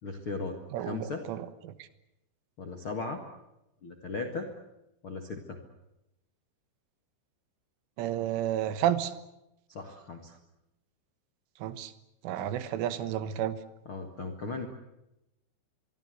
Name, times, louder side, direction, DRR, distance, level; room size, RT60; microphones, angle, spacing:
voice 1, 0.0-1.2 2.6-3.2 3.8-4.5 5.0-5.6 9.7-10.4 12.4-12.5 13.8-14.7, left 3 dB, 60° left, 5 dB, 1.4 m, -37 dB
voice 2, 0.7-1.7 8.0-9.1 11.6-11.9 12.2-13.6, right 11 dB, 80° right, 13 dB, 3.8 m, -31 dB
24.0 x 23.5 x 8.1 m, 0.90 s
omnidirectional pair, 5.6 m